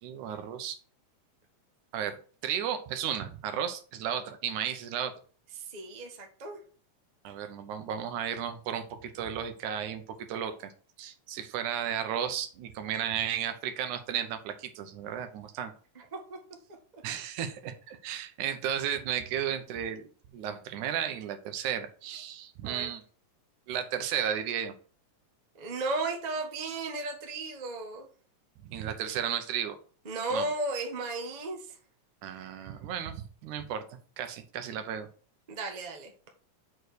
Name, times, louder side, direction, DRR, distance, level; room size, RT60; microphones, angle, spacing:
voice 1, 0.0-0.8 1.9-2.2 2.4-5.1 7.2-10.0 10.3-10.7 11.0-15.7 17.0-23.0 23.7-24.7 28.6-29.8 30.3-30.5 32.2-33.8 34.2-35.1, right 9 dB, 80° right, 8 dB, 2.3 m, -34 dB
voice 2, 5.6-6.6 15.9-16.4 16.9-17.0 22.6-22.9 25.6-28.1 30.0-31.8 35.5-36.1, right 2 dB, 60° right, 2 dB, 0.4 m, -35 dB
6.2 x 4.7 x 6.6 m, 0.41 s
omnidirectional pair, 3.5 m